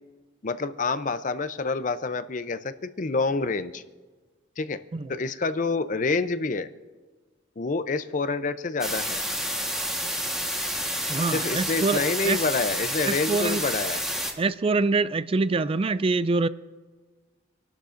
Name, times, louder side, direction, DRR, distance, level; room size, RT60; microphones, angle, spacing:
voice 1, 0.4-3.8 4.6-4.8 5.1-6.7 7.6-9.2 11.3-14.0, left 3 dB, 40° left, 0.5 m, -27 dB
sound 1, 8.8-14.3, equal, 5° right, 1.3 m, -29 dB
voice 2, 11.1-12.4 13.0-13.6 14.4-16.5, right 3 dB, 30° right, 0.3 m, -25 dB
27.0 x 12.0 x 2.6 m
head